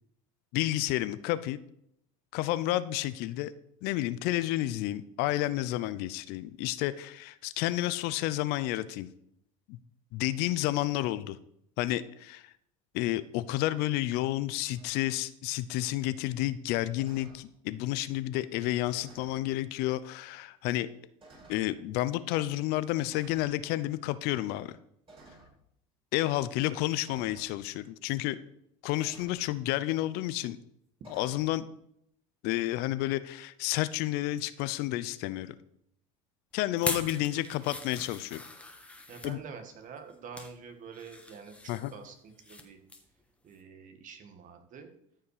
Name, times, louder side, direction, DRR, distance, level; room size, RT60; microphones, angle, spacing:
voice 1, 0.5-1.6 2.3-3.5 3.8-9.1 9.7-9.8 10.1-11.4 11.8-12.5 12.9-20.9 21.5-24.8 26.1-28.4 28.8-30.6 31.1-31.7 32.4-35.5 36.5-38.4 39.2-39.4 41.7-41.9, left 15 dB, 65° left, 15 dB, 0.7 m, -30 dB
sound 1, 14.7-14.9 16.9-17.4 18.9-19.5 20.3-20.4 21.2-21.7 23.1-23.6 25.1-25.5 27.0-27.5 29.0-29.5 31.0-31.5, right 2 dB, 30° right, 4.7 m, -54 dB
sound 2, 36.7-39.3 40.0-40.5 40.9-42.6 42.9-43.1 43.5-43.6, left 2 dB, 5° left, 1.7 m, -40 dB
voice 2, 39.1-42.8 43.4-44.9, right 6 dB, 45° right, 6 dB, 2.0 m, -47 dB
13.5 x 5.7 x 5.0 m, 0.72 s
supercardioid pair, 95°, 18 cm